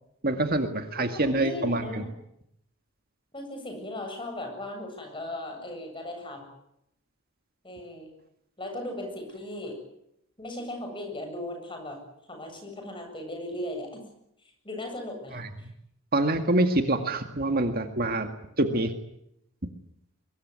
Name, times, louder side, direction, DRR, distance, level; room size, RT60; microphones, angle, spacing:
voice 1, 0.2-2.0 15.3-15.5 16.1-18.3 18.6-18.9, right 2 dB, 40° right, 6 dB, 2.0 m, -25 dB
voice 2, 1.0-2.1 3.3-6.5 7.6-8.1 8.6-9.8 10.4-14.0 14.4-15.7 18.2-18.3, left 1 dB, 20° left, 4 dB, 7.6 m, -37 dB
23.5 x 21.5 x 9.6 m, 0.78 s
head